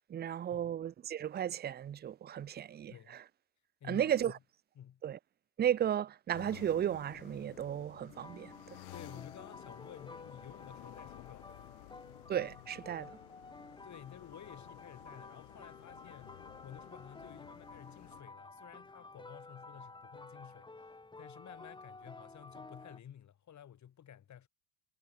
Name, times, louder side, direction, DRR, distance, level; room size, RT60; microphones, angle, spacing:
voice 1, 0.0-3.2 3.9-4.3 5.0-5.2 5.6-8.8 12.3-13.1, right 10 dB, 25° right, 0.5 m, -34 dB
voice 2, 2.9-3.2 3.8-4.4 4.8-5.0 8.9-11.7 13.8-20.9 21.2-24.5, left 10 dB, 40° left, 2.4 m, -53 dB
sound 1, 6.3-18.2, left 22 dB, 85° left, 2.0 m, -54 dB
sound 2, 8.1-23.0, left 3 dB, 10° left, 1.4 m, -52 dB
hypercardioid pair, 75°, 43 cm